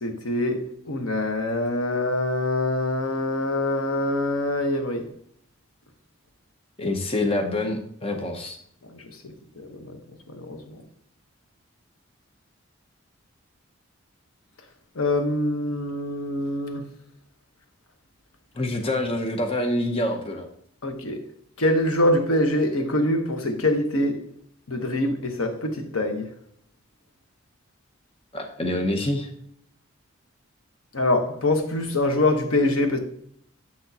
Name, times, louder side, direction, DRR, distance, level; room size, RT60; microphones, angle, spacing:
voice 1, 0.0-5.1 8.9-9.0 9.6-10.0 10.3-10.8 14.9-16.8 20.8-21.2 21.6-24.2 24.7-26.3 30.9-33.0, left 1 dB, 80° left, 1.0 m, -24 dB
voice 2, 6.8-8.6 18.5-20.5 28.3-29.3, left 1 dB, 25° left, 0.7 m, -26 dB
7.5 x 6.1 x 2.7 m
head